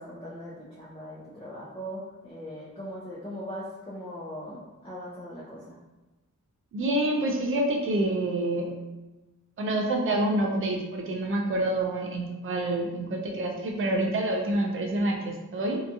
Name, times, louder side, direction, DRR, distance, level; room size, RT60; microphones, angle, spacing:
voice 1, 0.0-5.8, equal, 15° left, -8 dB, 0.5 m, -40 dB
voice 2, 6.7-8.7 9.6-15.8, right 1 dB, 40° right, 1 dB, 0.4 m, -27 dB
2.8 x 2.3 x 2.5 m, 1.1 s
wide cardioid pair, 175°, 32 cm